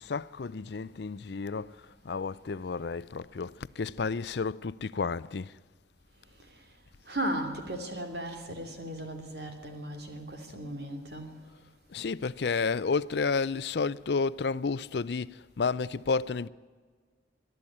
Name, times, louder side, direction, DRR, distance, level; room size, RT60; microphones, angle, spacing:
voice 1, 0.0-5.6 11.9-16.5, left 4 dB, 65° left, 0.5 m, -31 dB
voice 2, 7.1-11.4, right 1 dB, 60° right, 3.0 m, -36 dB
22.0 x 12.5 x 9.8 m
head